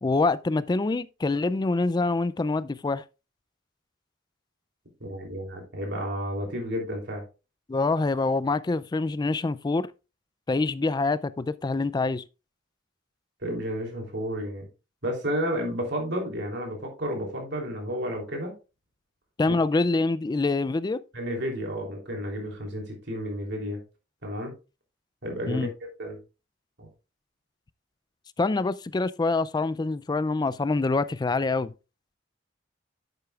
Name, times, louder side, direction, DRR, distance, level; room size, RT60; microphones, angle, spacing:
voice 1, 0.0-3.0 7.7-9.9 10.5-12.2 19.4-21.0 25.5-25.7 28.4-31.7, left 3 dB, 20° left, 0.3 m, -25 dB
voice 2, 5.0-7.2 13.4-14.6 15.0-18.6 19.5-19.6 21.1-23.8 24.2-24.5 25.2-25.7 26.0-26.2 26.8-26.9, equal, 65° right, 3.2 m, -31 dB
10.5 x 8.0 x 2.4 m
head